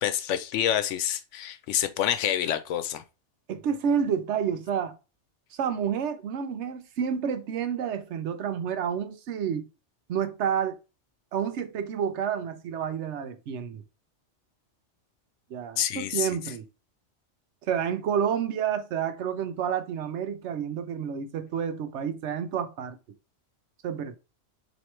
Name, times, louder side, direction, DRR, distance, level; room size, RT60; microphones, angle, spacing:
voice 1, 0.0-3.0 15.8-16.3, left 10 dB, 90° left, 0.9 m, -27 dB
voice 2, 3.5-4.9 5.5-9.6 10.1-10.8 11.3-13.8 15.5-16.7 17.7-23.0 23.8-24.2, right 8 dB, 80° right, 0.9 m, -29 dB
4.3 x 3.1 x 3.1 m
omnidirectional pair, 1.2 m